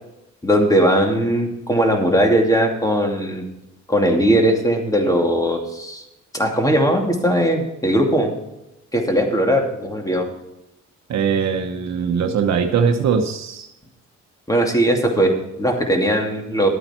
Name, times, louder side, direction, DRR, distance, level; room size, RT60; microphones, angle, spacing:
voice 1, 0.4-3.4 3.9-6.0 6.3-8.3 8.9-10.3 14.5-16.7, right 1 dB, 10° left, 2 dB, 2.6 m, -19 dB
voice 2, 11.1-13.7, right 6 dB, 60° right, 4 dB, 1.1 m, -20 dB
12.5 x 8.9 x 4.5 m, 0.90 s
cardioid pair, 90°, 30 cm